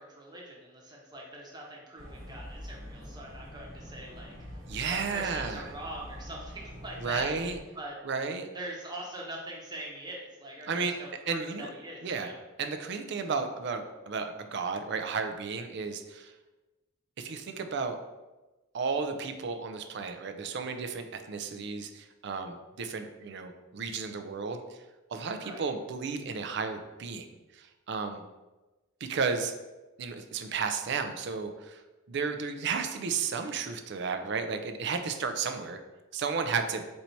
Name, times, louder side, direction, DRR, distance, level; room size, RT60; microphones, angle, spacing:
voice 1, 0.0-4.6 4.9-7.3 7.7-7.9 8.5-12.4 25.4-25.7, right 1 dB, 20° right, -3 dB, 0.9 m, -42 dB
sound 1, 2.0-7.6, equal, 75° right, 1.4 m, -45 dB
voice 2, 4.7-5.7 7.0-7.6 8.0-8.5 10.7-11.0 11.3-11.7 12.0-12.3 12.6-16.3 17.2-18.0 18.7-24.6 25.1-28.2 29.0-29.5 30.0-31.8 32.1-35.8 36.1-36.8, right 5 dB, 60° right, 7 dB, 0.4 m, -33 dB
4.3 x 2.7 x 4.4 m, 1.1 s
head